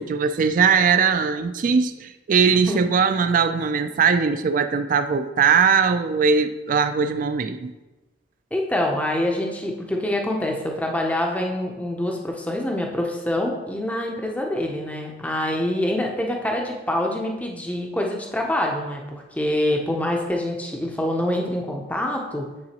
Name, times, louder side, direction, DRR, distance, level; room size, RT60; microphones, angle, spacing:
voice 1, 0.0-7.7, right 5 dB, 45° right, 10 dB, 0.3 m, -20 dB
voice 2, 2.5-2.8 8.5-22.5, left 1 dB, 10° left, 1 dB, 0.5 m, -25 dB
8.6 x 3.8 x 2.9 m, 1.1 s
head